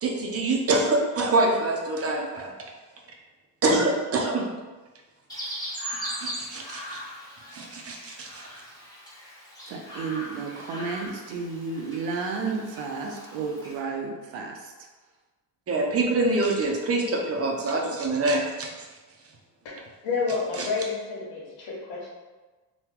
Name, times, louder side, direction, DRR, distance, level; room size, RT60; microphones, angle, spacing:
voice 1, 0.0-2.5 3.6-4.5 6.2-7.0 7.5-8.5 15.7-18.7, right 2 dB, 35° right, 0 dB, 0.6 m, -25 dB
Chirp tweet, 5.3-13.8, equal, 10° left, 1.0 m, -39 dB
voice 2, 9.7-14.7, right 4 dB, 80° right, 2 dB, 0.7 m, -32 dB
voice 3, 20.0-22.1, left 4 dB, 80° left, -3 dB, 1.1 m, -29 dB
3.0 x 2.2 x 3.6 m, 1.3 s
cardioid pair, 100°, 45 cm